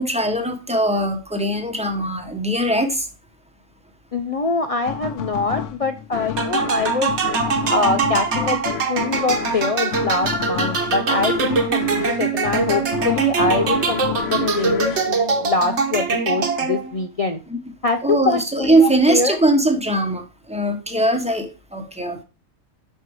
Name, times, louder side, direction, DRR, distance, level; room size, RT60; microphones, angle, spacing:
voice 1, 0.0-3.1 17.5-17.6 18.0-22.2, right 1 dB, 5° right, 5 dB, 0.9 m, -20 dB
voice 2, 4.1-7.1 7.7-17.4 17.8-19.4, left 3 dB, 55° left, 6 dB, 0.4 m, -24 dB
sound 1, 4.9-16.1, left 10 dB, 75° left, 0.9 m, -31 dB
sound 2, 6.4-17.0, right 5 dB, 60° right, 1.3 m, -22 dB
6.1 x 5.4 x 4.7 m, 0.33 s
omnidirectional pair, 1.3 m